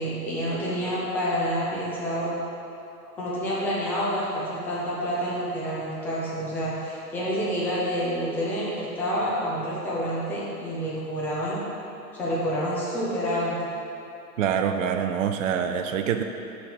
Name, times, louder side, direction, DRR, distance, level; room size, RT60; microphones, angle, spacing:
voice 1, 0.0-2.3 3.0-11.6 12.1-13.7, equal, 5° left, -7 dB, 0.4 m, -28 dB
voice 2, 14.4-16.2, right 8 dB, 55° right, 6 dB, 0.5 m, -25 dB
6.6 x 5.1 x 5.9 m, 2.8 s
figure-of-eight pair, 110°, 48 cm